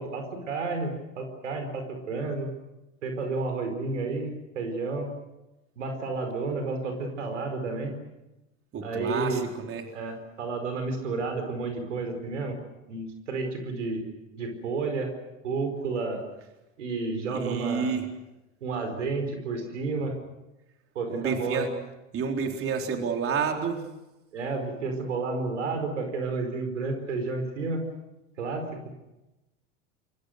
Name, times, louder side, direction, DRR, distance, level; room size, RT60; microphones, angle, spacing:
voice 1, 0.0-2.5 3.0-5.1 5.8-7.9 8.8-9.4 9.9-12.6 12.9-14.0 14.3-15.1 15.4-16.2 16.8-17.9 18.6-20.1 20.9-21.7 24.3-27.8 28.4-28.8, right 3 dB, 85° right, 6 dB, 4.8 m, -31 dB
voice 2, 8.7-9.9 17.3-18.1 21.1-21.7 22.1-23.8, right 6 dB, 40° right, 3 dB, 3.9 m, -29 dB
27.5 x 22.0 x 6.6 m, 0.99 s
hypercardioid pair, 85°, 36 cm